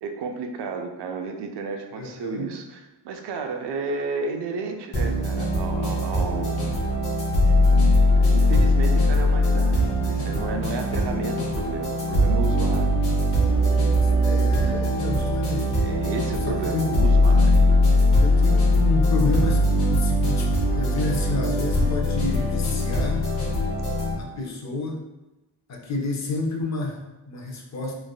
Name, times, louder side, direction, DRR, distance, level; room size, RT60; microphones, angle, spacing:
voice 1, 0.0-7.0 8.2-12.9 15.8-17.6, right 4 dB, 80° right, 4 dB, 0.5 m, -32 dB
voice 2, 1.9-2.5 14.2-15.7 16.4-17.0 18.2-19.6 19.9-23.2 24.2-25.0 25.7-28.0, left 3 dB, 45° left, 1 dB, 0.5 m, -29 dB
sound 1, 4.9-24.1, left 1 dB, 70° left, 0.9 m, -21 dB
3.2 x 2.4 x 2.3 m, 1.0 s
wide cardioid pair, 125°, 40 cm